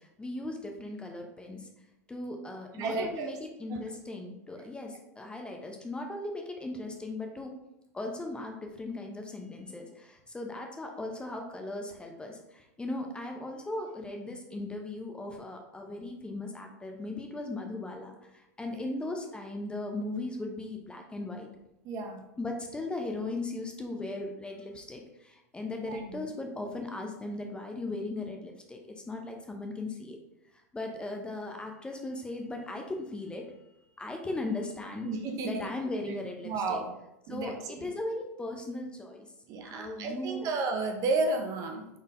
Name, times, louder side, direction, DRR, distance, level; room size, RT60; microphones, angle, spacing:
voice 1, 0.2-1.6 2.1-7.5 7.9-18.2 18.6-21.5 22.4-28.8 29.1-30.2 30.7-33.5 34.0-35.1 35.4-36.8 37.3-39.3 39.6-40.5, left 2 dB, 10° left, 2 dB, 0.6 m, -37 dB
voice 2, 2.7-3.4 3.7-3.8 18.7-18.8 21.8-22.2 25.9-26.3 35.0-35.7 36.4-36.9 37.3-37.9 39.5-41.9, right 3 dB, 40° right, 4 dB, 0.6 m, -32 dB
3.9 x 3.8 x 2.5 m, 0.86 s
hypercardioid pair, 90°, 9 cm